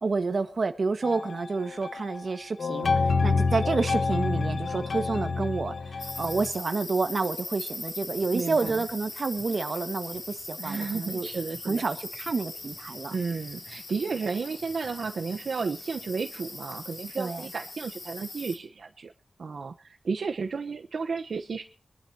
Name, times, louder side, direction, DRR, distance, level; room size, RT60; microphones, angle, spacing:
voice 1, 0.0-11.3 11.6-13.2 17.2-17.5, right 4 dB, 60° right, 1.6 m, -29 dB
sound 1, 1.0-2.2 2.6-6.5, left 4 dB, 80° left, 1.3 m, -28 dB
sound 2, 6.0-18.6, left 3 dB, 55° left, 2.9 m, -40 dB
voice 2, 8.3-8.8 10.6-11.8 13.1-19.1 19.4-21.6, right 4 dB, 85° right, 1.0 m, -33 dB
24.5 x 12.0 x 2.9 m
wide cardioid pair, 115°, 0 cm